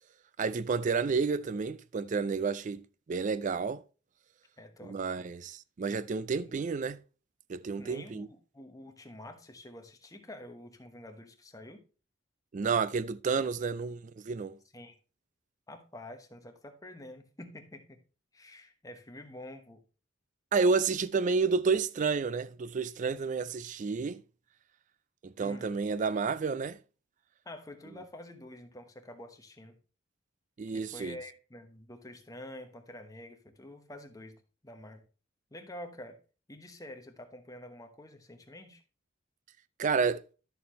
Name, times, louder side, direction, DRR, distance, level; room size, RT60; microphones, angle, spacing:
voice 1, 0.4-2.8 3.1-3.8 4.8-7.0 7.5-8.3 12.5-14.6 20.5-24.2 25.2-26.8 30.6-31.2 39.8-40.2, right 5 dB, 40° right, 0.4 m, -30 dB
voice 2, 4.6-5.3 6.4-6.5 7.8-11.8 14.7-15.0 15.7-18.0 18.3-19.8 25.4-25.7 27.4-29.8 30.7-35.0 35.5-36.2 36.5-38.8, left 1 dB, 20° left, 1.1 m, -48 dB
11.0 x 6.8 x 3.1 m
head